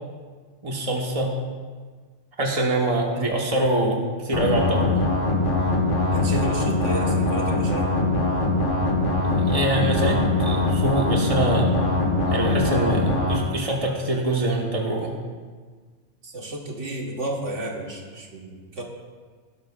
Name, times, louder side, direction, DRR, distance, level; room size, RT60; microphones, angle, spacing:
voice 1, 0.6-1.3 2.4-5.1 9.4-11.7 12.3-15.2, right 1 dB, 30° right, -1 dB, 1.5 m, -24 dB
sound 1, 4.3-13.4, left 2 dB, 75° left, 2.0 m, -22 dB
voice 2, 6.1-7.9 16.2-18.8, right 2 dB, 80° right, 0 dB, 1.9 m, -32 dB
17.5 x 11.5 x 2.5 m, 1.5 s
omnidirectional pair, 1.2 m